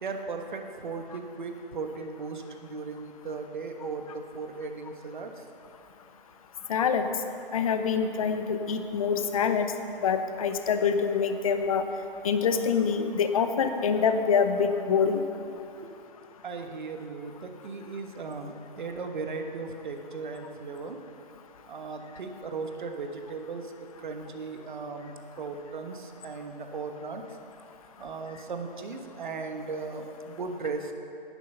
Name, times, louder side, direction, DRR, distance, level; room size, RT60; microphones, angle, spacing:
voice 1, 0.0-5.4 15.8-15.9 16.2-21.0 21.7-27.2 28.0-30.9, right 4 dB, 55° right, 5 dB, 1.2 m, -37 dB
voice 2, 6.7-7.1 7.5-9.7 10.0-11.8 12.2-15.2, left 6 dB, 35° left, 8 dB, 0.7 m, -25 dB
11.0 x 10.5 x 5.6 m, 2.7 s
figure-of-eight pair, 145°, 29 cm